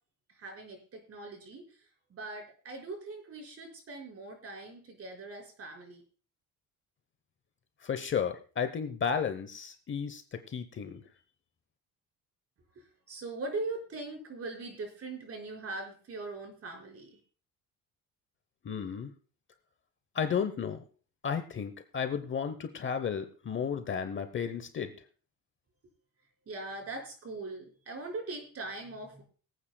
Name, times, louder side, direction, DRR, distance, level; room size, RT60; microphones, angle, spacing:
voice 1, 0.3-6.0 12.7-17.2 26.4-29.2, right 3 dB, 40° right, 1 dB, 5.0 m, -41 dB
voice 2, 7.8-11.0 18.6-19.1 20.1-20.8 21.2-24.9, left 7 dB, 35° left, 9 dB, 0.9 m, -33 dB
24.0 x 8.6 x 2.2 m, 0.40 s
cardioid pair, 135°, 35 cm